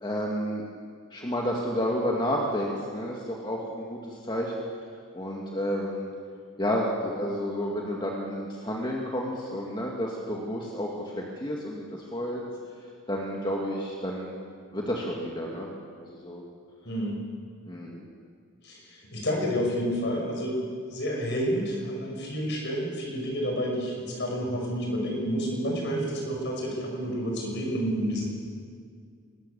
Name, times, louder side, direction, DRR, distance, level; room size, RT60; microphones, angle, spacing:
voice 1, 0.0-0.7 1.1-4.5 5.1-6.1 6.6-12.4 13.1-14.3 14.7-15.7 16.0-16.4 17.7-18.0, equal, 20° left, -2 dB, 2.2 m, -31 dB
voice 2, 16.8-17.2 18.6-28.2, equal, 55° left, 0 dB, 6.3 m, -29 dB
21.0 x 19.5 x 7.1 m, 2.1 s
head